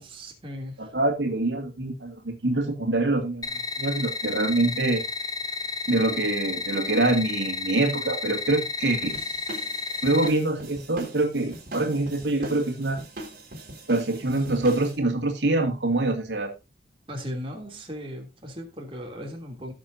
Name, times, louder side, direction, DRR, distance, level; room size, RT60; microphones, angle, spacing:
voice 1, 0.0-0.9 17.1-19.7, equal, 30° right, 2.9 m, -37 dB
voice 2, 0.8-3.5 3.8-5.1 5.9-9.2 10.0-13.0 13.9-16.5, right 2 dB, 80° right, 2.2 m, -25 dB
sound 1, 3.4-10.3, left 3 dB, 20° left, 1.2 m, -32 dB
sound 2, 9.1-15.0, right 1 dB, 50° right, 3.9 m, -41 dB
17.0 x 6.7 x 2.7 m
head